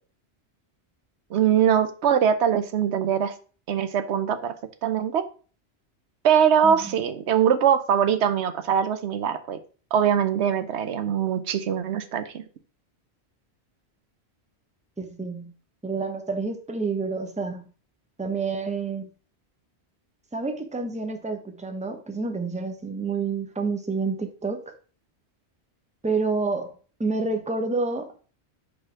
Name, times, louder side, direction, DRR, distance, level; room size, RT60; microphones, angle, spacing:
voice 1, 1.3-3.3 3.7-4.5 4.8-5.2 6.2-9.6 9.9-12.4, right 8 dB, 80° right, 1.0 m, -22 dB
voice 2, 15.0-15.5 15.8-17.6 18.2-19.1 20.3-24.7 26.0-26.7 27.0-28.1, right 4 dB, 5° right, 0.7 m, -28 dB
5.2 x 4.3 x 5.6 m
omnidirectional pair, 1.1 m